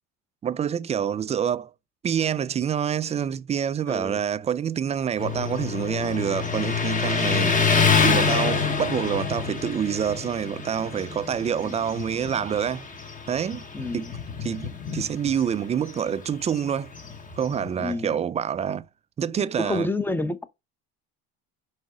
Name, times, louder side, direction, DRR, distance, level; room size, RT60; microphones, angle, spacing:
voice 1, 0.4-1.7 2.0-7.6 8.0-12.8 13.3-13.6 13.9-14.1 14.4-16.9 17.4-18.9 19.2-19.9, right 8 dB, 20° right, 0.3 m, -27 dB
voice 2, 3.9-4.2 11.6-11.7 13.7-14.1 17.8-18.2 19.6-20.4, left 2 dB, 5° left, 0.7 m, -29 dB
Motorcycle, 5.2-17.8, left 5 dB, 25° left, 1.2 m, -27 dB
6.2 x 4.8 x 4.9 m
cardioid pair, 115°, 30 cm